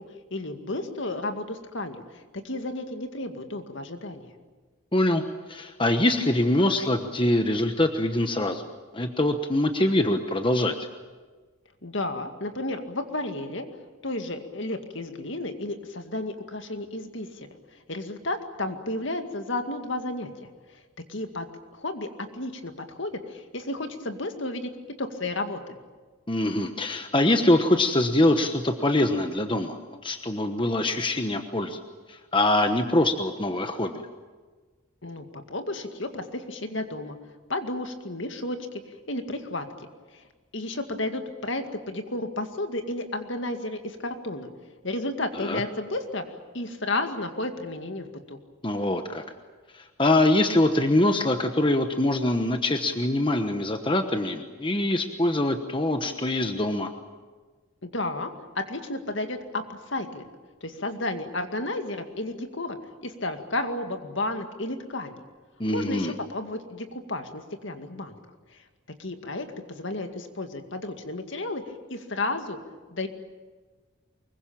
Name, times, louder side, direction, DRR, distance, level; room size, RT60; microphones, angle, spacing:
voice 1, 0.3-4.3 11.8-13.7 14.0-17.5 17.9-20.5 21.1-21.5 21.7-24.7 25.0-25.8 35.0-37.2 37.5-38.8 39.1-39.7 40.1-40.3 40.5-44.5 44.8-46.2 46.5-48.4 57.8-60.3 60.6-65.2 65.7-68.1 69.0-71.6 71.9-72.6 72.9-73.1, left 2 dB, 60° left, 6 dB, 2.2 m, -32 dB
voice 2, 4.9-5.2 5.5-8.6 8.9-10.8 26.3-31.8 32.1-34.0 45.4-45.6 48.6-49.2 49.7-56.9 65.6-66.1, left 1 dB, 25° left, 6 dB, 1.1 m, -24 dB
24.5 x 22.0 x 8.8 m, 1.4 s
head